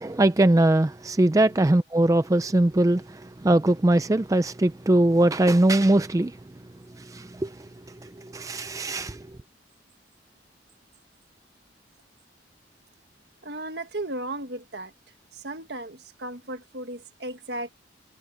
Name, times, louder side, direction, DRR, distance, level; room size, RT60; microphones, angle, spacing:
voice 1, 0.0-6.4 7.0-7.6 8.0-9.3, right 1 dB, 20° right, 0.4 m, -21 dB
voice 2, 13.4-14.9 15.3-17.7, right 1 dB, 60° right, 1.7 m, -35 dB
head